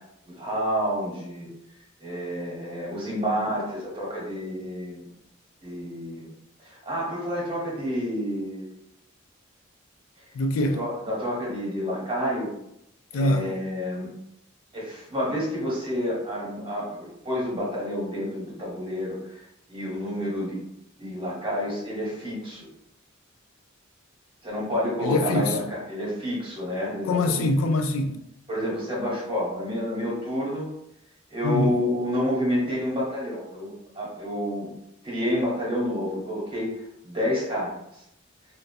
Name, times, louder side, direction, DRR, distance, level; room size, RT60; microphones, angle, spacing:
voice 1, 0.3-1.5 2.0-5.1 5.6-6.4 6.6-8.7 10.7-12.5 13.1-14.1 14.7-20.6 21.0-22.7 24.4-27.5 28.5-30.7 31.3-34.7 35.0-36.7 37.0-37.7, equal, 25° right, 1.0 m, -29 dB
voice 2, 10.3-10.8 13.1-13.6 25.0-25.6 27.1-28.2 31.4-31.8, left 2 dB, 85° left, 0.3 m, -24 dB
2.3 x 2.1 x 2.6 m
head